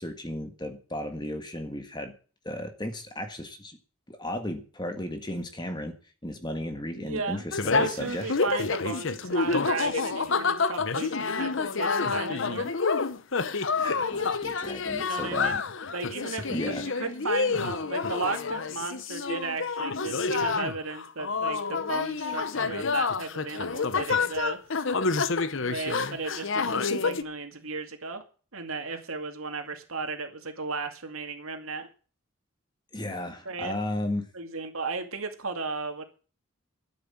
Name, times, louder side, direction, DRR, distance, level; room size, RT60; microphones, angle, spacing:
voice 1, 0.0-2.1 2.5-3.8 4.1-6.0 6.2-8.3 13.8-15.6 16.5-16.8 32.9-34.3, left 1 dB, 20° left, 7 dB, 1.6 m, -34 dB
voice 2, 7.0-7.4 7.7-12.7 14.9-15.6 15.9-24.6 25.6-28.2 28.5-31.9 33.5-33.7 34.3-36.0, right 4 dB, 75° right, 6 dB, 2.4 m, -35 dB
sound 1, 7.5-27.2, left 4 dB, 60° left, 0.9 m, -28 dB
12.5 x 9.2 x 7.4 m, 0.38 s
head